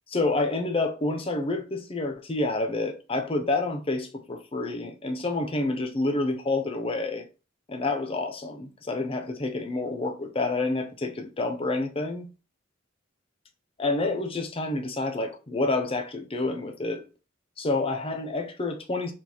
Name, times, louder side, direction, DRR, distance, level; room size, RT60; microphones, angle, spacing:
voice 1, 0.1-7.2 7.7-12.3 13.8-17.0 17.6-19.1, left 2 dB, 30° left, 0.6 m, -28 dB
4.6 x 3.7 x 3.0 m
head